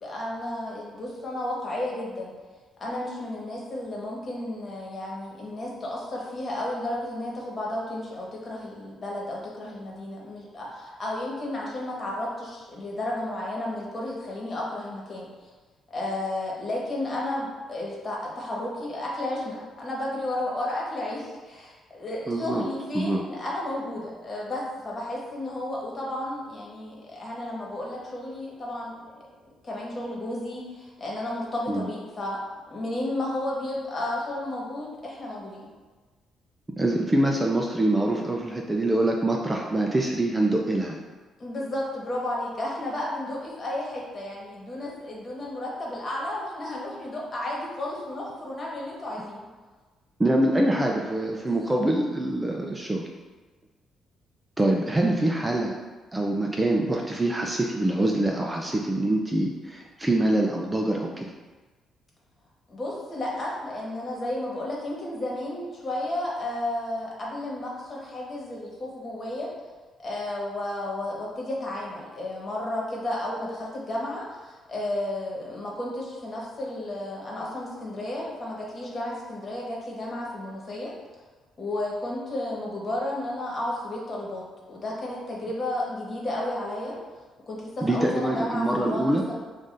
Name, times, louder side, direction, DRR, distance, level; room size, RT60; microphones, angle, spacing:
voice 1, 0.0-2.3 2.8-15.5 15.9-29.2 29.6-32.4 32.7-35.7 41.4-49.5 51.5-51.8 62.7-69.5 70.0-80.9 81.6-87.0 87.5-89.2, left 1 dB, 35° left, -3 dB, 1.3 m, -32 dB
voice 2, 22.3-22.6 22.9-23.2 31.7-31.9 36.8-41.0 50.2-53.1 54.6-55.8 56.1-61.3 87.8-89.2, right 1 dB, 15° right, 0 dB, 0.4 m, -24 dB
7.0 x 2.5 x 2.6 m, 1.3 s
cardioid pair, 90°, 0 cm